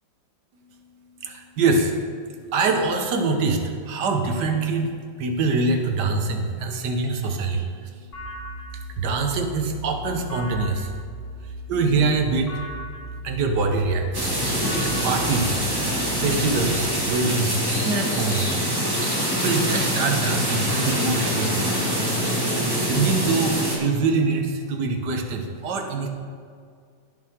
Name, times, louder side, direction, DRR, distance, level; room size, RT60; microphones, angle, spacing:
voice 1, 1.2-1.9 2.5-8.1 9.0-10.9 11.4-12.6 13.2-14.3 14.8-15.6 16.2-18.5 19.4-21.7 22.7-26.1, right 3 dB, 60° right, 4 dB, 1.5 m, -24 dB
sound 1, 8.1-16.8, right 1 dB, 35° left, 2.3 m, -37 dB
sound 2, 14.1-23.8, equal, 10° right, 1.5 m, -24 dB
17.0 x 5.8 x 3.6 m, 2.2 s
omnidirectional pair, 2.2 m